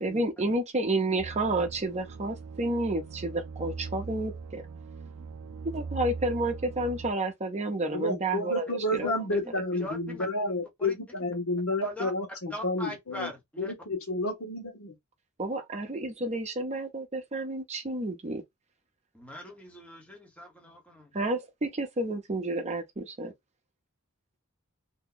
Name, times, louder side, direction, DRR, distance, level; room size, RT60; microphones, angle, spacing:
voice 1, 0.0-4.6 5.7-9.1 15.4-18.4 21.1-23.3, right 2 dB, 30° right, 0.7 m, -30 dB
sound 1, 1.2-7.1, right 4 dB, 70° right, 0.4 m, -40 dB
voice 2, 7.9-13.3 13.6-14.9, left 2 dB, 75° left, 1.1 m, -31 dB
voice 3, 9.0-10.3 10.8-11.0 11.8-12.1 12.5-13.7 19.1-21.1, left 1 dB, 5° left, 1.0 m, -41 dB
2.7 x 2.3 x 3.8 m
head